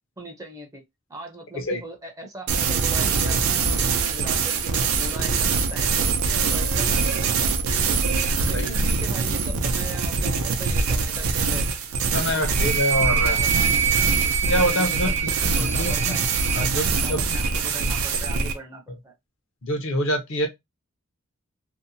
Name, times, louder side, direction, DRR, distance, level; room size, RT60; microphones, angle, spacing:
voice 1, 0.2-0.8 1.1-7.5 8.5-11.7 12.3-12.6 13.2-14.1 14.5-16.2 16.6-19.1, right 1 dB, 15° right, 0.5 m, -39 dB
sound 1, 2.5-18.6, right 4 dB, 80° right, 0.5 m, -23 dB
voice 2, 8.4-8.7 12.1-13.4 14.5-15.3 15.6-16.2 16.5-16.8 17.1-17.2 19.6-20.5, equal, 60° left, 0.7 m, -25 dB
Wind instrument woodwind instrument, 12.5-16.7, right 9 dB, 60° right, 0.9 m, -26 dB
2.7 x 2.1 x 2.6 m
head